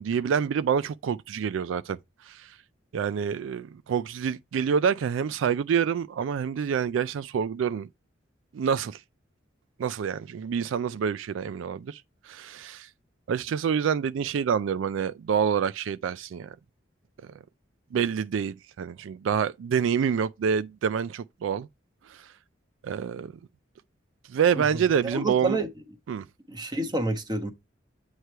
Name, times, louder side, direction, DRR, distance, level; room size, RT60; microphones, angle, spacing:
voice 1, 0.0-2.6 2.9-7.9 8.5-9.0 9.8-12.9 13.3-16.6 17.9-21.7 22.1-22.3 22.8-23.3 24.3-25.6 26.1-26.2, right 7 dB, 80° right, 0.3 m, -27 dB
voice 2, 25.0-25.7 26.5-27.5, right 2 dB, 20° right, 1.1 m, -28 dB
8.1 x 3.2 x 4.4 m
head